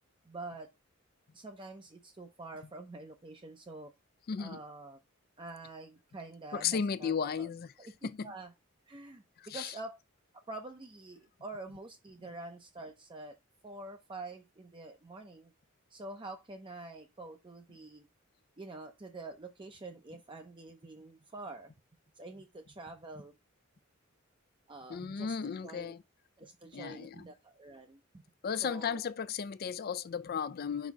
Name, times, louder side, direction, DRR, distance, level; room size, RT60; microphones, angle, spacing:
voice 1, 0.3-0.7 1.3-3.9 4.4-5.0 5.4-7.5 7.8-7.9 8.2-8.5 8.9-10.0 10.5-13.4 13.6-15.5 15.9-18.0 18.6-21.7 22.2-23.4 24.7-25.9 26.4-28.2 28.6-29.0, right 2 dB, 25° right, 0.6 m, -46 dB
voice 2, 4.3-4.6 6.5-7.7 8.0-8.3 9.4-9.7 24.9-26.0 26.7-27.2 28.4-30.9, left 6 dB, 50° left, 0.4 m, -35 dB
5.1 x 4.1 x 4.6 m
head